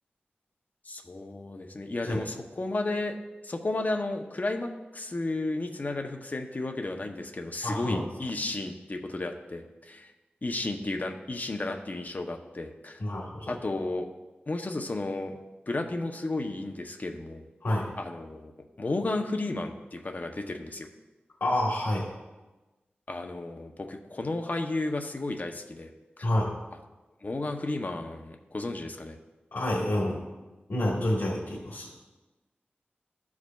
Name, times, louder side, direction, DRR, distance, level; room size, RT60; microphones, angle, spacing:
voice 1, 0.8-3.2 3.4-10.1 10.4-13.0 13.5-14.1 14.5-15.4 15.7-17.5 18.0-18.5 18.8-20.9 23.1-25.9 26.2-26.3 27.2-29.2, left 2 dB, 45° left, 4 dB, 0.7 m, -33 dB
voice 2, 7.6-8.0 13.0-13.5 17.6-17.9 21.4-22.1 26.2-26.5 29.5-30.2 30.7-31.9, left 1 dB, 80° left, -6 dB, 1.7 m, -28 dB
14.0 x 4.8 x 2.4 m, 1.1 s
wide cardioid pair, 60°, 4 cm